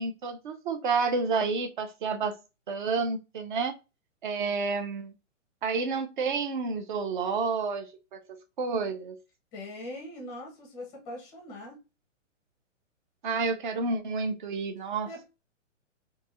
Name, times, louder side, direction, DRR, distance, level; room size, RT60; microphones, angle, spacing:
voice 1, 0.0-2.4 2.7-3.7 4.2-5.1 5.6-9.2 13.2-15.1, right 4 dB, 40° right, 0.5 m, -30 dB
voice 2, 9.5-11.8 15.1-15.2, left 1 dB, 10° left, 0.6 m, -41 dB
2.9 x 2.6 x 2.4 m
hypercardioid pair, 155°, 38 cm